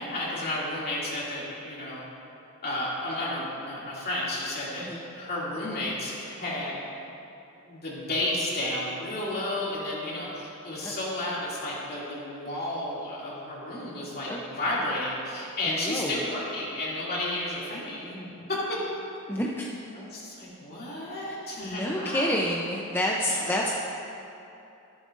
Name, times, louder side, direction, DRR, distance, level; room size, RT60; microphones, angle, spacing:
voice 1, 0.0-2.0 2.6-6.8 7.6-18.8 19.9-22.4 23.3-23.6, left 1 dB, 45° left, -6 dB, 2.5 m, -32 dB
voice 2, 15.6-16.2 19.3-19.7 21.1-21.4 21.6-23.7, equal, 10° left, -3 dB, 0.6 m, -29 dB
13.5 x 11.0 x 2.5 m, 2.8 s
head